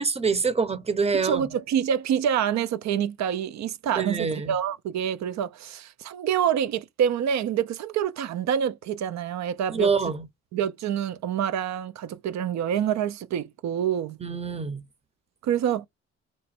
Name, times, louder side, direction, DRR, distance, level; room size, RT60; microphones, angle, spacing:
voice 1, 0.0-1.5 4.0-4.5 9.7-10.3 14.2-14.8, right 5 dB, 20° right, 0.7 m, -25 dB
voice 2, 1.1-9.9 10.5-14.2 15.4-15.9, right 9 dB, 65° right, 0.5 m, -27 dB
3.0 x 2.2 x 4.2 m
cardioid pair, 90°, 30 cm